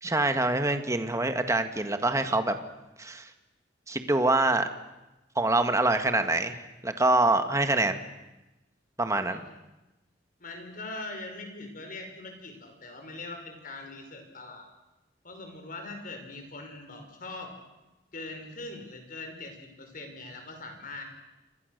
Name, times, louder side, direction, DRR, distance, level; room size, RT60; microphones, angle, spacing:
voice 1, 0.0-2.6 3.0-3.3 3.9-4.7 5.4-6.5 6.8-8.0 9.0-9.4, right 2 dB, 15° right, 8 dB, 1.7 m, -25 dB
voice 2, 10.4-14.7 15.2-17.5 18.1-21.0, left 2 dB, 50° left, 4 dB, 5.5 m, -41 dB
27.5 x 25.5 x 6.7 m, 1.0 s
head